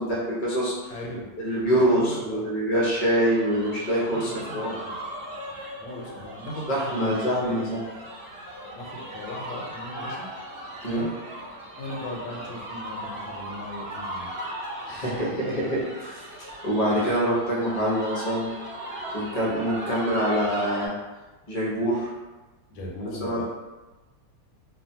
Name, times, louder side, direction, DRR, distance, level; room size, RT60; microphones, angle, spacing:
voice 1, 0.0-0.7 1.4-4.8 6.7-7.8 10.8-11.0 14.9-16.2 16.6-18.5 19.1-21.0 21.5-22.1 23.2-23.4, equal, 55° left, -6 dB, 0.4 m, -25 dB
voice 2, 0.9-1.3 1.7-2.4 4.1-4.9 5.8-7.6 8.7-10.3 10.9-11.1 11.8-14.3 22.7-23.4, left 1 dB, 85° left, -1 dB, 1.4 m, -37 dB
sound 1, 3.1-20.9, right 1 dB, 55° right, 0.7 m, -38 dB
3.1 x 2.2 x 2.7 m, 1.2 s
omnidirectional pair, 2.0 m